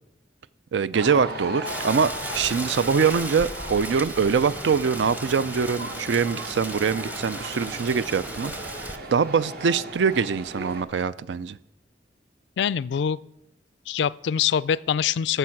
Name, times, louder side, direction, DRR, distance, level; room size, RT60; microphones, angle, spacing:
voice 1, 0.7-11.6, right 6 dB, 80° right, 17 dB, 0.4 m, -24 dB
sound 1, 0.9-10.8, right 1 dB, 60° right, 1.3 m, -37 dB
Rain, 1.6-9.0, right 1 dB, 10° right, 0.7 m, -36 dB
voice 2, 12.6-13.2 13.9-15.4, left 8 dB, 75° left, 21 dB, 0.3 m, -24 dB
12.5 x 6.8 x 5.9 m, 0.91 s
head